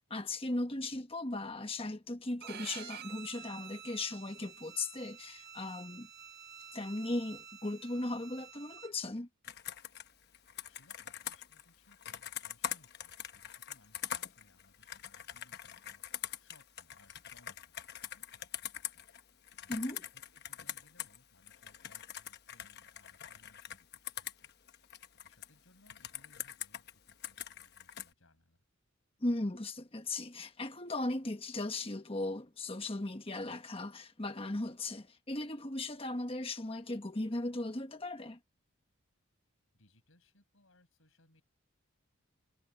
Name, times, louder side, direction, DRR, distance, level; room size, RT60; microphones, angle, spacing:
voice 1, 0.1-6.1 6.7-9.3 19.7-20.0 29.2-38.4, left 2 dB, 25° left, 1.3 m, -37 dB
voice 2, 0.7-1.0 10.6-16.0 16.4-17.7 18.0-18.3 19.6-24.5 25.1-28.6 39.7-41.4, left 1 dB, 65° left, 6.1 m, -67 dB
Bowed string instrument, 2.4-8.9, right 8 dB, 50° right, 3.1 m, -50 dB
Computer keyboard, 9.4-21.2 21.5-25.5 25.9-28.1, left 10 dB, 50° left, 1.1 m, -43 dB
head